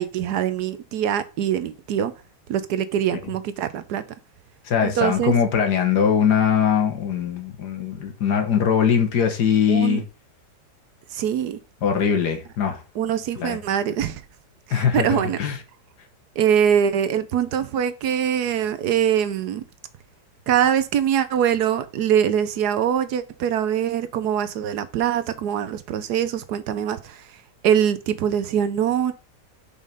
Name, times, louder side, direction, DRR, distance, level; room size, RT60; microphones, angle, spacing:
voice 1, 0.0-2.1 2.5-4.0 4.8-5.3 9.7-10.0 11.1-11.6 13.0-14.2 14.7-15.4 16.4-19.6 20.5-27.2 27.6-29.1, right 9 dB, 70° right, 1.2 m, -23 dB
voice 2, 4.7-10.0 11.8-12.8 13.4-13.6 14.7-15.6, left 7 dB, 70° left, 1.8 m, -21 dB
5.6 x 4.9 x 5.2 m
omnidirectional pair, 1.9 m